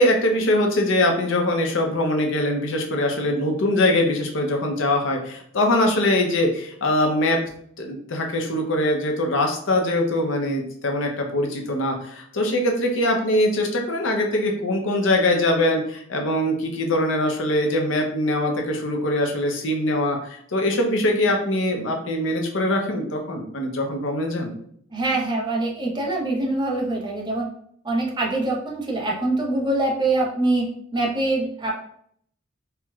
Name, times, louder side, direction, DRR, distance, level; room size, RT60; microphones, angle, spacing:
voice 1, 0.0-7.4 7.8-24.5, left 1 dB, 65° left, 2 dB, 0.6 m, -22 dB
voice 2, 24.9-27.5 27.8-30.7 30.9-31.7, right 2 dB, 20° right, -2 dB, 0.6 m, -24 dB
4.3 x 2.1 x 2.3 m, 0.66 s
head